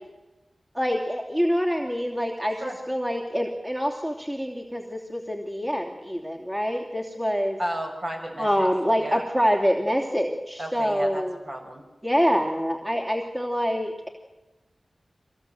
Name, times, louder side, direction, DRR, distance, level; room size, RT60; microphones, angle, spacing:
voice 1, 0.7-7.6 8.4-11.4 12.0-14.1, equal, 20° right, 0 dB, 2.9 m, -26 dB
voice 2, 7.6-8.7 9.0-9.2 10.6-11.8, right 1 dB, 60° right, 0 dB, 6.6 m, -33 dB
24.0 x 17.5 x 7.8 m, 1.1 s
cardioid pair, 45°, 0 cm